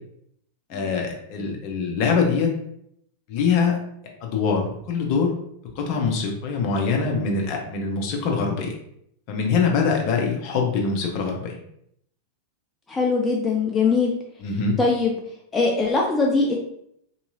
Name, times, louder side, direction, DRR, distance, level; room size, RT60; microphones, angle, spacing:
voice 1, 0.7-2.5 3.3-3.8 4.2-5.3 5.8-8.7 9.3-11.6 14.4-14.8, left 5 dB, 45° left, 1 dB, 0.7 m, -23 dB
voice 2, 12.9-14.1 14.8-15.2 15.5-16.6, left 4 dB, 15° left, -1 dB, 0.4 m, -21 dB
3.5 x 2.8 x 2.7 m, 0.71 s
figure-of-eight pair, 90°, 0 cm